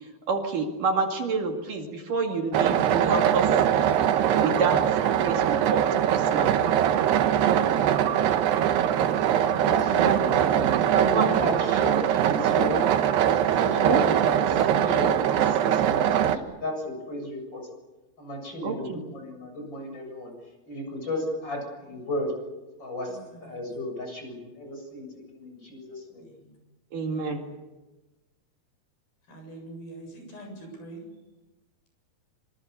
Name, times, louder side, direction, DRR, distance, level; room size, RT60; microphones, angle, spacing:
voice 1, 0.3-3.5 4.4-4.8 5.2-6.6 10.0-10.3 10.8-11.5 13.8-14.0 18.6-19.0 26.9-27.4, right 4 dB, 60° right, 2 dB, 3.6 m, -28 dB
sound 1, 2.5-16.4, right 10 dB, 90° right, 3.3 m, -22 dB
voice 2, 9.5-9.9 10.4-12.9 13.6-17.6 18.2-20.3 20.6-22.3 22.8-26.2, left 1 dB, 25° left, 3 dB, 8.0 m, -34 dB
voice 3, 23.1-23.7 26.2-26.6 27.1-27.6 29.3-31.1, right 2 dB, 65° left, 3 dB, 9.4 m, -45 dB
26.5 x 25.5 x 6.9 m, 1.1 s
omnidirectional pair, 4.6 m